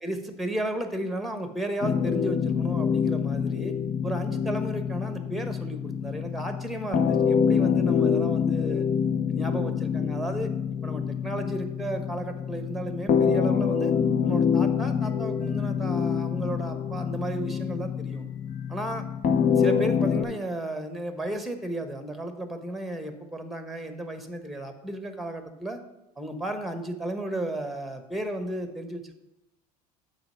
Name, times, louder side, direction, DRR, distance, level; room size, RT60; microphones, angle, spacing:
voice 1, 0.0-3.8 4.0-8.9 9.3-10.5 10.8-13.9 14.2-18.2 18.7-19.1 19.6-25.8 26.2-29.1, right 1 dB, ahead, 7 dB, 1.0 m, -34 dB
sound 1, 1.8-20.2, left 7 dB, 45° left, 0.8 m, -26 dB
7.9 x 4.7 x 5.5 m, 0.95 s
hypercardioid pair, 90°, 20 cm